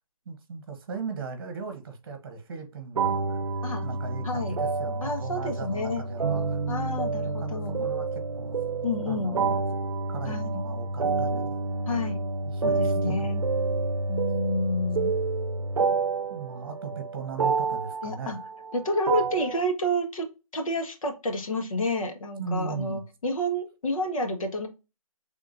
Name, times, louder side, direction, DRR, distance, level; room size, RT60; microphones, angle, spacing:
voice 1, 0.2-6.6 7.2-8.6 9.1-9.6 10.1-11.6 12.5-13.4 16.3-18.4 22.4-23.0, right 5 dB, 40° right, 1.2 m, -38 dB
sound 1, 2.9-19.6, right 4 dB, 75° right, 0.6 m, -29 dB
voice 2, 4.2-4.6 5.0-6.0 6.7-7.8 8.8-9.4 10.2-10.6 11.9-12.2 12.6-13.4 14.1-15.1 18.0-18.4 18.7-20.3 20.5-24.7, left 1 dB, 65° left, 1.5 m, -29 dB
5.8 x 3.5 x 2.6 m
hypercardioid pair, 165°, 19 cm